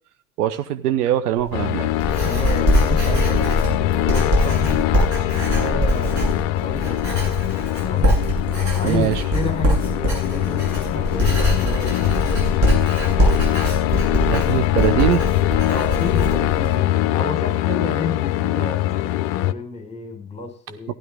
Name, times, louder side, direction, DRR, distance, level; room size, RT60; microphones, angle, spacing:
voice 1, 0.4-1.9 8.8-9.2 14.3-15.2 20.9-21.0, right 11 dB, 65° right, 9 dB, 1.2 m, -22 dB
Writing, 1.4-16.7, equal, 35° right, 7.9 m, -22 dB
sound 1, 1.5-19.5, left 14 dB, 45° left, 0.6 m, -22 dB
voice 2, 2.2-4.9 5.3-7.4 7.7-8.1 8.7-12.6 15.7-20.9, left 2 dB, 15° left, 2 dB, 4.5 m, -31 dB
15.5 x 11.0 x 3.7 m, 0.39 s
figure-of-eight pair, 65°, 50 cm